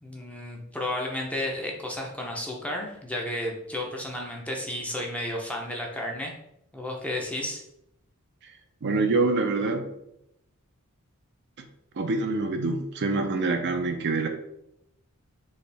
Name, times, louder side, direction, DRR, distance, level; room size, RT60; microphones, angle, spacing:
voice 1, 0.0-6.3 6.7-7.6, left 1 dB, 5° left, 0 dB, 0.6 m, -32 dB
voice 2, 8.8-9.9 12.0-14.3, right 3 dB, 50° right, 5 dB, 0.5 m, -25 dB
4.2 x 3.1 x 3.3 m, 0.79 s
head